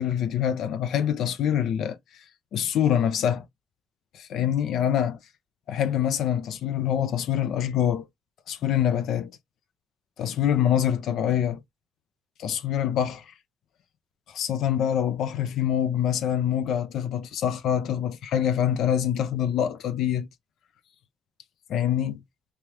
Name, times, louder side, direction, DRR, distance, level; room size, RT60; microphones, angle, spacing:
voice 1, 0.0-2.0 2.5-3.4 4.1-5.2 5.7-8.1 8.5-9.3 10.2-11.6 12.4-13.2 14.3-20.3 21.7-22.2, left 9 dB, 75° left, 0.5 m, -25 dB
3.4 x 3.3 x 2.9 m
cardioid pair, 90°, 0 cm